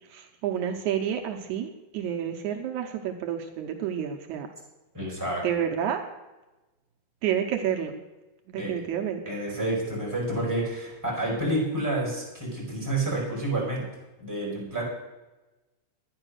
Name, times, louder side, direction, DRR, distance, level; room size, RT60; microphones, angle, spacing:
voice 1, 0.1-4.5 5.4-6.0 7.2-8.0 8.5-9.2, right 9 dB, 80° right, 4 dB, 2.2 m, -29 dB
voice 2, 4.9-5.5 8.6-8.7 9.3-13.8 14.2-14.8, right 1 dB, 5° right, -4 dB, 5.3 m, -29 dB
11.5 x 9.8 x 6.4 m, 1.1 s
omnidirectional pair, 3.4 m